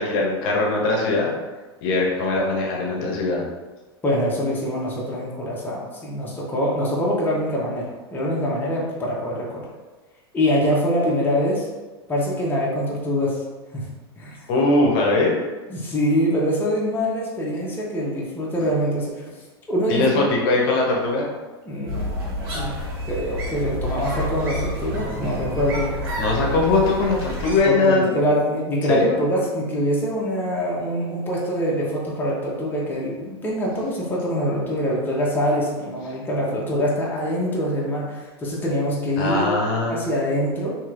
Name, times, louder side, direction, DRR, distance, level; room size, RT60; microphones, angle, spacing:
voice 1, 0.0-1.3 1.8-3.4 14.5-15.4 19.9-21.3 26.2-28.2 28.9-29.2 39.2-40.0, left 2 dB, 55° left, -2 dB, 0.8 m, -21 dB
voice 2, 4.0-9.7 10.3-11.7 12.1-13.4 13.7-13.8 14.2-14.5 15.7-19.3 19.7-20.4 21.7-22.7 23.1-25.9 27.6-39.6 39.9-40.7, equal, 15° left, -4 dB, 0.8 m, -24 dB
sound 1, 21.9-27.6, left 1 dB, 65° right, 1.1 m, -29 dB
3.0 x 2.8 x 2.5 m, 1.2 s
hypercardioid pair, 105°, 13 cm